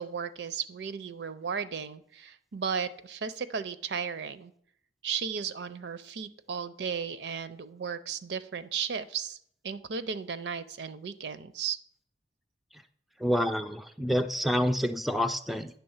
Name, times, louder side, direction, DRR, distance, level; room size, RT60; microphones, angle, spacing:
voice 1, 0.0-4.5 5.0-9.4 9.6-11.8, right 6 dB, 70° right, 14 dB, 0.5 m, -35 dB
voice 2, 13.2-15.7, equal, ahead, 11 dB, 0.3 m, -28 dB
9.8 x 3.5 x 7.1 m, 0.64 s
head